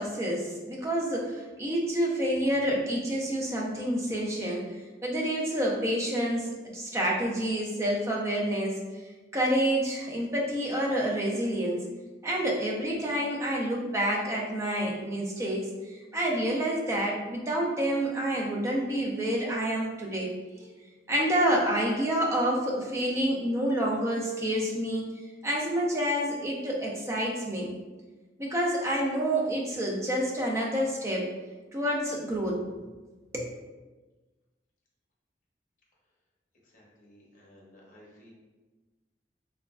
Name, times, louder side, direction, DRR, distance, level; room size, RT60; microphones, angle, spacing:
voice 1, 0.0-4.7 5.0-8.8 9.3-11.8 12.2-20.3 20.6-20.7 21.1-25.1 25.4-27.7 28.4-31.3 31.7-32.6 33.3-33.5, right 1 dB, 15° right, -2 dB, 0.4 m, -28 dB
voice 2, 36.7-38.3, equal, 45° left, -3 dB, 0.7 m, -55 dB
2.9 x 2.2 x 2.4 m, 1.2 s
head